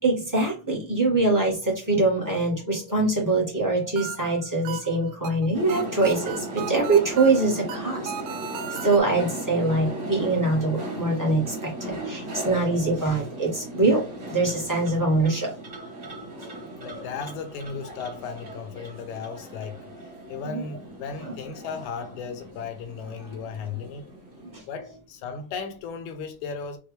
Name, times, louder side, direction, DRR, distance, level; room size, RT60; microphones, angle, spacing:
voice 1, 0.0-8.1 8.8-15.5 15.9-16.1 20.4-20.6 21.2-21.3 24.5-24.6, right 3 dB, 15° right, 0.6 m, -23 dB
sound 1, 3.6-9.0, right 9 dB, 85° right, 1.5 m, -37 dB
sound 2, 5.5-24.6, right 1 dB, 40° right, 1.1 m, -37 dB
voice 2, 16.8-19.9 20.3-24.1 24.7-26.8, left 5 dB, 75° left, 2.1 m, -35 dB
6.2 x 2.6 x 3.2 m
omnidirectional pair, 3.7 m